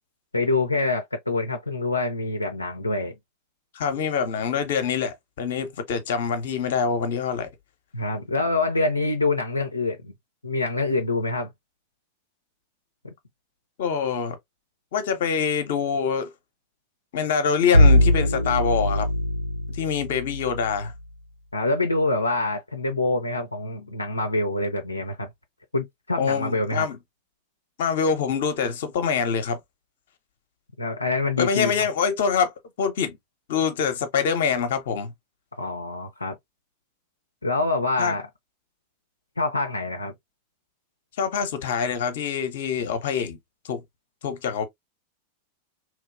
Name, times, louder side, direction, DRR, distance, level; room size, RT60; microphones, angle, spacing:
voice 1, 0.3-3.1 7.9-10.1 10.4-11.5 13.0-13.1 21.5-25.3 25.7-26.9 30.8-31.9 35.6-36.4 37.4-38.3 39.4-40.1, left 2 dB, 80° left, 0.5 m, -26 dB
voice 2, 3.7-7.5 13.8-14.4 14.9-16.3 17.1-19.1 19.8-20.9 26.2-27.0 27.8-29.6 31.4-32.5 32.8-33.2 33.5-35.1 38.0-38.1 41.2-43.4 43.7-43.8 44.2-44.7, left 6 dB, 55° left, 0.8 m, -25 dB
Bowed string instrument, 17.7-20.8, left 1 dB, 85° right, 0.4 m, -20 dB
3.0 x 2.9 x 2.4 m
figure-of-eight pair, 90°, 0 cm